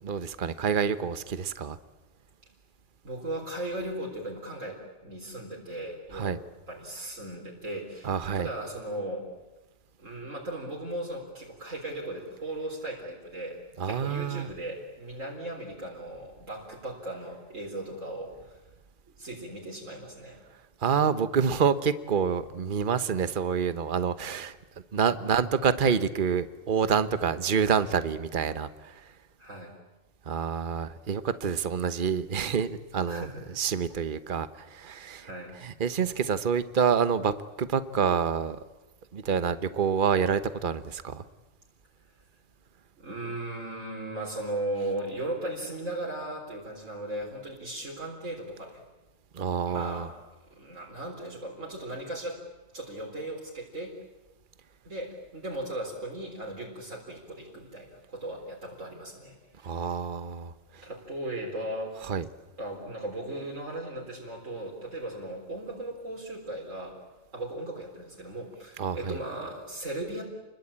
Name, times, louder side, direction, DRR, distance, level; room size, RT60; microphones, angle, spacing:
voice 1, 0.0-1.8 6.1-6.4 8.0-8.5 13.8-14.5 20.8-24.6 24.9-29.1 30.3-33.3 33.6-35.3 35.6-38.6 39.1-41.2 49.3-50.1 59.6-60.8 62.1-62.3 68.8-69.2, right 6 dB, 45° right, 12 dB, 1.2 m, -27 dB
voice 2, 3.0-6.4 6.7-9.3 10.0-18.6 19.1-20.4 25.3-25.4 29.4-29.7 33.1-33.6 35.2-35.5 43.0-48.8 49.7-50.1 50.5-52.4 52.7-53.9 54.8-59.9 60.8-62.0 62.6-67.0 67.3-70.2, right 1 dB, 75° right, -2 dB, 4.4 m, -37 dB
29.0 x 21.5 x 8.8 m, 1.1 s
omnidirectional pair, 1.3 m